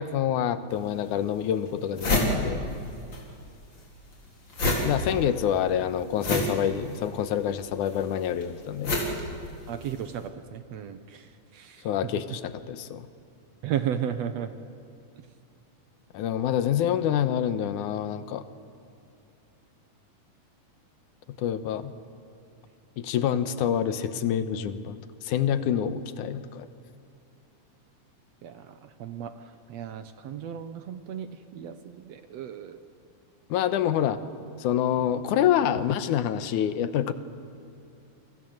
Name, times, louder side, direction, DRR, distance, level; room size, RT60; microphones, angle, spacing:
voice 1, 0.0-2.6 4.8-9.0 11.8-13.1 16.1-18.4 21.4-21.9 23.0-26.7 33.5-34.2 34.6-37.1, left 9 dB, 75° left, 12 dB, 2.4 m, -27 dB
sound 1, 0.7-0.8 1.4-1.5 1.7-3.2 3.5-10.0, left 1 dB, 35° left, 4.6 m, -29 dB
voice 2, 9.7-11.9 13.6-14.5 23.3-23.7 28.4-32.8, right 9 dB, 65° right, 10 dB, 1.9 m, -35 dB
29.5 x 25.0 x 7.9 m, 2.6 s
omnidirectional pair, 3.7 m